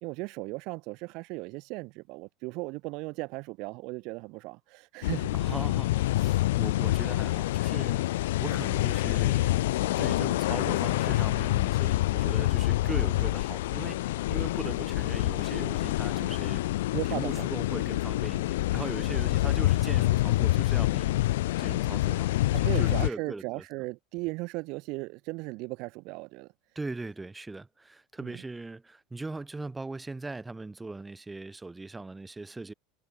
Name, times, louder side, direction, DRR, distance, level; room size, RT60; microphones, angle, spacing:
voice 1, 0.0-5.3 8.4-8.6 12.9-13.3 16.9-17.5 22.5-26.5 28.2-28.4, right 25 dB, 60° right, 1.1 m, -37 dB
sound 1, 5.0-23.1, left 16 dB, 80° left, 2.0 m, -27 dB
voice 2, 5.3-23.6 26.8-32.7, right 3 dB, 10° right, 5.2 m, -40 dB
supercardioid pair, 105°, 0 cm